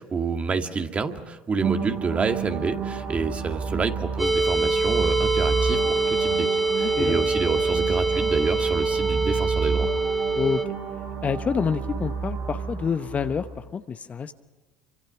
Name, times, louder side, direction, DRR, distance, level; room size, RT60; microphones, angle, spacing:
voice 1, 0.0-9.9, right 4 dB, 30° right, 6 dB, 2.1 m, -28 dB
sound 1, 1.6-13.6, right 5 dB, 55° right, 7.3 m, -30 dB
sound 2, 4.2-10.6, right 3 dB, ahead, 1.4 m, -24 dB
voice 2, 6.8-7.2 10.3-10.7 11.2-14.3, left 6 dB, 35° left, 10 dB, 1.0 m, -27 dB
27.5 x 25.0 x 6.0 m, 1.2 s
hypercardioid pair, 75°, 4 cm